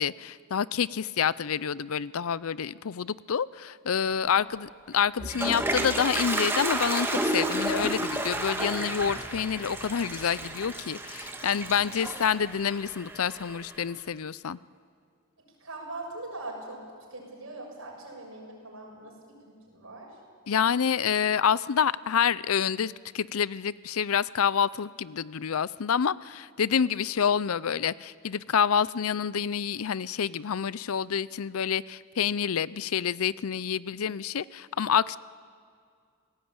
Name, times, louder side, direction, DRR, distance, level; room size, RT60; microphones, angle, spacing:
voice 1, 0.0-14.6 20.5-35.2, left 7 dB, 80° left, 19 dB, 0.5 m, -28 dB
Toilet flush, 4.9-13.8, right 1 dB, 10° right, 1.7 m, -31 dB
voice 2, 15.6-16.8 17.1-20.2, right 2 dB, 70° right, 0 dB, 6.8 m, -42 dB
27.0 x 18.0 x 8.8 m, 2.2 s
head